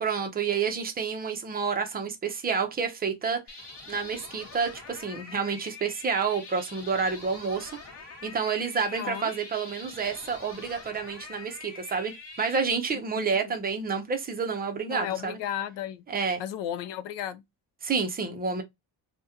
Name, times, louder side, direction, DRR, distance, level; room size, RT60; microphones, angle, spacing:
voice 1, 0.0-3.4 3.9-7.7 8.2-15.4 16.1-16.4 17.8-18.6, right 5 dB, 20° right, 0.5 m, -29 dB
sound 1, 3.5-12.6, left 3 dB, 40° left, 1.1 m, -45 dB
voice 2, 8.9-9.3 13.2-13.5 14.9-16.0 16.4-17.4, left 10 dB, 80° left, 0.6 m, -34 dB
2.8 x 2.1 x 3.5 m
cardioid pair, 175°, 42 cm